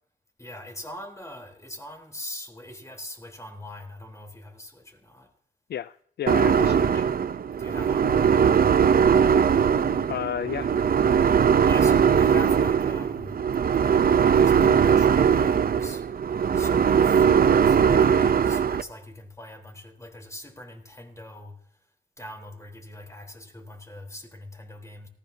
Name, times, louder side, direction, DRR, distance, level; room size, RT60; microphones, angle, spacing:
voice 1, 0.4-5.3 6.6-7.0 7.6-8.4 11.6-13.4 13.7-16.0 16.5-17.2 17.6-21.6 22.2-25.1, left 1 dB, 15° left, 3 dB, 3.8 m, -42 dB
voice 2, 5.7-7.0 10.1-10.7 17.9-18.4, left 9 dB, 65° left, 16 dB, 0.4 m, -33 dB
sound 1, 6.3-18.8, right 7 dB, 50° right, 0.7 m, -20 dB
18.5 x 15.0 x 2.8 m, 0.65 s
cardioid pair, 55°, 19 cm